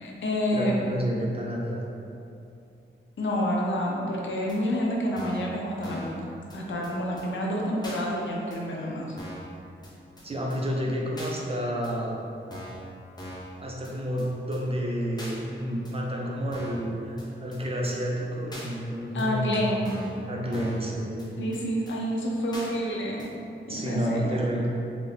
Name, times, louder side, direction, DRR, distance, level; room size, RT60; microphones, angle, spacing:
voice 1, 0.0-0.8 3.2-6.1 6.5-9.1 19.1-19.9 21.4-23.3 23.7-24.4, equal, 70° left, -2 dB, 0.6 m, -28 dB
voice 2, 0.5-1.9 10.2-12.2 13.6-19.6 20.3-21.2 23.6-24.7, equal, 30° right, -2 dB, 0.4 m, -30 dB
sound 1, 4.5-4.6 5.2-5.5 5.8-6.2 6.5-6.6 6.8-6.9 7.2-7.3 7.8-8.0 8.5-8.6 9.2-9.5 9.8-9.9 10.2-10.3 10.5-10.6 11.2-11.3 11.8-11.9 12.5-12.8 13.2-13.5 13.8-13.9 14.2-14.3 14.5-14.6 15.2-15.3 15.8-15.9 16.5-16.8 17.2-17.3 17.5-17.6 17.8-17.9 18.5-18.7 19.2-19.3 19.8-20.2 20.5-20.8 21.2-21.3 21.5-21.6 21.9-22.0 22.5-22.7 23.2-23.3, equal, 20° left, 0.6 m, -41 dB
3.2 x 2.6 x 3.2 m, 2.6 s
wide cardioid pair, 160°, 20 cm